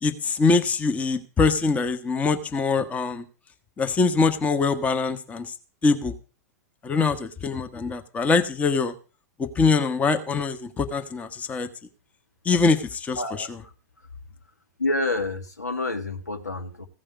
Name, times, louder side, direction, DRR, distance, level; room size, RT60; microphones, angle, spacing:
voice 1, 0.0-3.2 3.8-5.5 5.8-6.1 6.8-8.9 9.4-11.7 12.4-12.8 13.0-13.2, left 4 dB, 15° left, 8 dB, 1.1 m, -23 dB
voice 2, 13.2-13.7 14.8-16.9, left 2 dB, 75° left, 7 dB, 1.6 m, -28 dB
15.5 x 5.5 x 8.1 m, 0.35 s
figure-of-eight pair, 95°, 9 cm